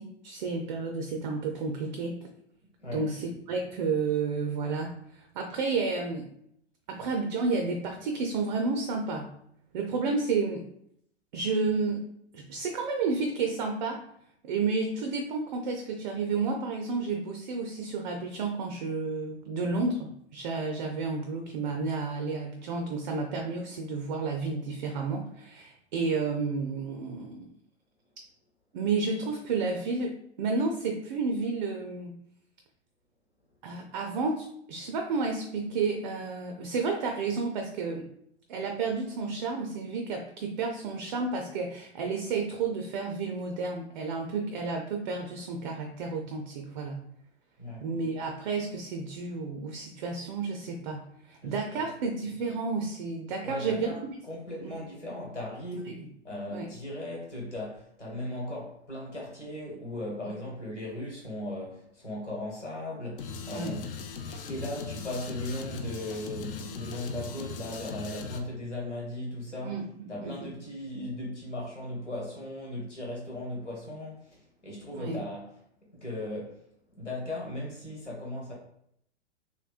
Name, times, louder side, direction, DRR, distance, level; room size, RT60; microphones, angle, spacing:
voice 1, 0.0-2.3 2.9-6.3 6.9-9.3 9.7-10.7 11.3-12.1 12.3-14.0 14.4-27.5 28.7-32.2 33.6-38.1 38.5-47.0 47.8-53.9 54.6-54.7 55.7-56.1 56.5-56.7 60.2-60.3 63.5-63.8 69.6-69.8 70.2-70.3 74.9-75.2, right 4 dB, 40° right, 3 dB, 0.4 m, -31 dB
voice 2, 51.4-51.8 53.4-54.0 54.3-56.0 56.2-63.9 64.3-69.8 70.1-75.5 75.9-76.6 76.9-78.5, left 1 dB, 85° left, -3 dB, 1.4 m, -37 dB
sound 1, 63.2-68.4, left 5 dB, 50° left, 0.5 m, -39 dB
3.0 x 2.9 x 2.4 m, 0.71 s
figure-of-eight pair, 100°, 35 cm